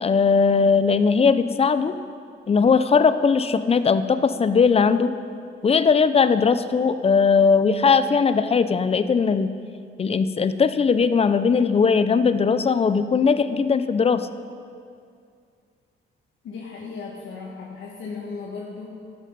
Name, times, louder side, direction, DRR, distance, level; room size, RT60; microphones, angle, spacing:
voice 1, 0.0-1.9 2.5-5.1 5.6-9.5 10.0-14.3, left 5 dB, 30° left, 12 dB, 0.5 m, -19 dB
voice 2, 16.4-18.9, left 4 dB, 70° left, -3 dB, 1.4 m, -36 dB
12.5 x 7.6 x 5.3 m, 2.3 s
cardioid pair, 90°, 20 cm